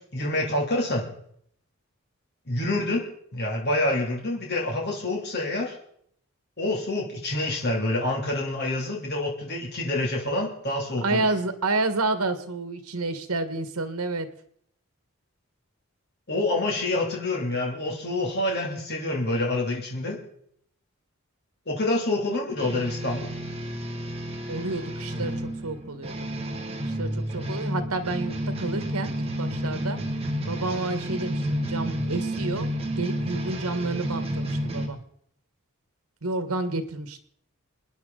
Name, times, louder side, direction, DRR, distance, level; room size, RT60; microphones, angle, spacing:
voice 1, 0.1-1.0 2.5-5.7 6.6-11.3 16.3-20.2 21.7-23.3, left 2 dB, 50° left, -1 dB, 2.8 m, -27 dB
voice 2, 11.0-14.3 24.5-25.3 25.6-26.1 26.8-30.0 30.5-32.7 33.0-35.0 36.2-37.2, right 2 dB, 90° right, 10 dB, 1.5 m, -29 dB
sound 1, 22.6-34.9, equal, 25° right, 1.9 m, -31 dB
28.5 x 10.0 x 3.9 m, 0.68 s
head